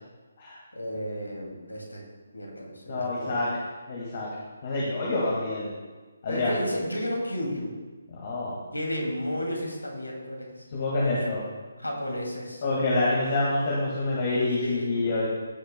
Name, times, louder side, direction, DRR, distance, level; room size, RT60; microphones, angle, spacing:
voice 1, 0.7-2.0 2.3-3.5 6.3-7.7 8.7-10.7 11.0-11.4 11.8-12.6 14.6-14.9, equal, 85° left, 0 dB, 2.3 m, -32 dB
voice 2, 2.9-3.5 3.9-4.3 4.6-5.7 6.2-6.5 8.1-8.6 10.7-11.4 12.6-15.3, left 2 dB, 40° left, -5 dB, 1.9 m, -27 dB
15.0 x 6.4 x 2.2 m, 1.3 s
figure-of-eight pair, 145°, 0 cm